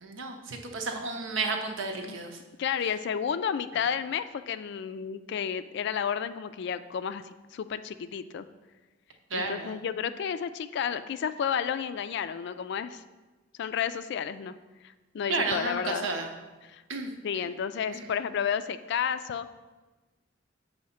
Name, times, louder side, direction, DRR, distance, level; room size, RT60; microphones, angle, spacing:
voice 1, 0.0-2.3 9.3-9.8 15.3-16.3 16.9-17.1 17.9-18.1, right 3 dB, 85° right, 3 dB, 0.8 m, -32 dB
voice 2, 2.6-8.5 9.3-13.0 13.6-14.5 15.1-16.1 16.6-16.8 17.2-19.5, left 7 dB, 60° left, 12 dB, 0.3 m, -31 dB
7.3 x 2.8 x 5.6 m, 1.2 s
head